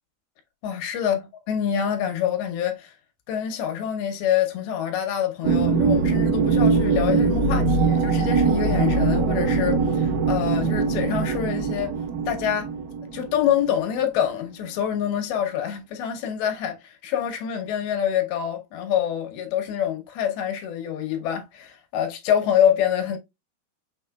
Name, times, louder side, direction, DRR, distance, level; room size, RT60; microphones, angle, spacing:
voice 1, 0.6-2.9 3.3-11.9 12.3-12.7 13.1-23.2, left 9 dB, 80° left, 2.7 m, -26 dB
sound 1, 5.4-14.0, right 4 dB, 70° right, 2.3 m, -22 dB
6.3 x 3.7 x 2.2 m
omnidirectional pair, 4.5 m